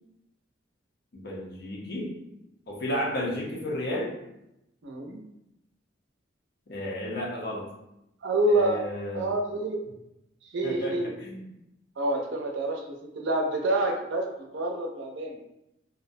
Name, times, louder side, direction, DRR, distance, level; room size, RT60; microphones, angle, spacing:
voice 1, 1.1-2.1 2.7-4.1 6.7-7.7 8.5-9.3 10.6-11.4, left 1 dB, 60° left, -2 dB, 0.6 m, -32 dB
voice 2, 4.8-5.2 8.2-8.9 9.1-9.9 10.5-11.1 12.0-14.3 14.5-15.4, right 1 dB, 65° right, 1 dB, 0.5 m, -27 dB
2.5 x 2.1 x 2.5 m, 0.85 s
head